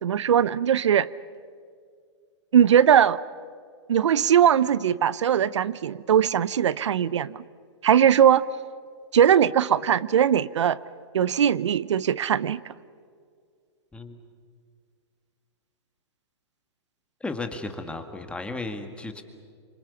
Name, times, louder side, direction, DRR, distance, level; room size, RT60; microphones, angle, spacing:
voice 1, 0.0-1.1 2.5-3.2 3.9-7.4 7.8-8.4 9.1-10.8 11.1-12.6, right 9 dB, 80° right, 19 dB, 0.6 m, -20 dB
voice 2, 17.2-19.2, left 3 dB, 5° left, 7 dB, 2.0 m, -34 dB
26.5 x 24.5 x 7.1 m, 2.1 s
hypercardioid pair, 125°, 15 cm